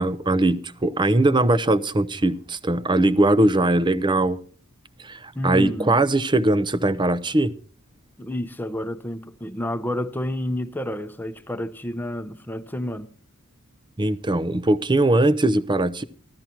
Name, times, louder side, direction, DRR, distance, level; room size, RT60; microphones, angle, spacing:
voice 1, 0.0-4.4 5.0-7.5 14.0-16.0, right 2 dB, 20° right, 0.7 m, -20 dB
voice 2, 5.3-6.0 8.2-13.1, left 1 dB, 10° left, 0.8 m, -29 dB
15.0 x 13.0 x 4.5 m
head